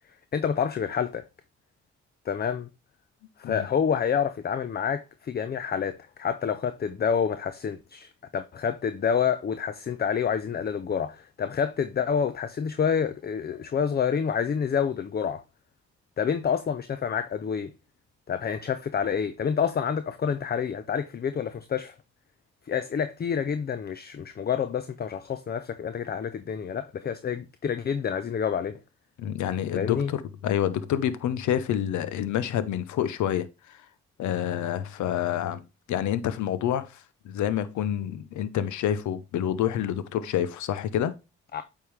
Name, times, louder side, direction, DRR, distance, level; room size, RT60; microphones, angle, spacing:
voice 1, 0.3-1.3 2.3-2.7 3.4-15.4 16.2-17.7 18.3-21.9 22.7-28.8 29.7-30.1 41.5-41.6, left 7 dB, 35° left, 0.5 m, -28 dB
voice 2, 29.2-33.9 34.2-35.6 35.9-41.1, left 10 dB, 70° left, 0.7 m, -28 dB
8.5 x 3.6 x 3.2 m
supercardioid pair, 55°, 30 cm